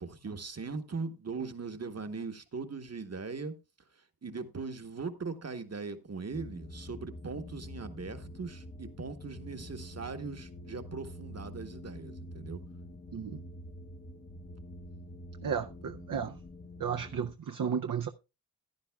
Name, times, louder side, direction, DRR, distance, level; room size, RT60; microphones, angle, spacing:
voice 1, 0.0-3.5 4.0-12.6, right 4 dB, 45° right, 1.1 m, -40 dB
sound 1, 6.3-17.3, left 1 dB, 30° left, 0.8 m, -46 dB
voice 2, 15.4-16.3 16.8-18.1, right 7 dB, 60° right, 0.6 m, -33 dB
14.5 x 10.5 x 2.3 m
wide cardioid pair, 80°, 36 cm